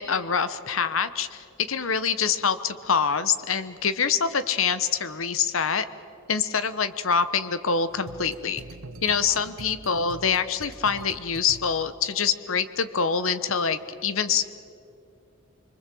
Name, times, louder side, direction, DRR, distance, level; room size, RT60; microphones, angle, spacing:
voice 1, 0.0-5.9 6.3-8.6 9.0-14.4, left 6 dB, 75° left, 13 dB, 1.1 m, -25 dB
sound 1, 7.9-12.1, right 2 dB, 85° right, 1.1 m, -44 dB
26.0 x 23.5 x 7.7 m, 2.6 s
head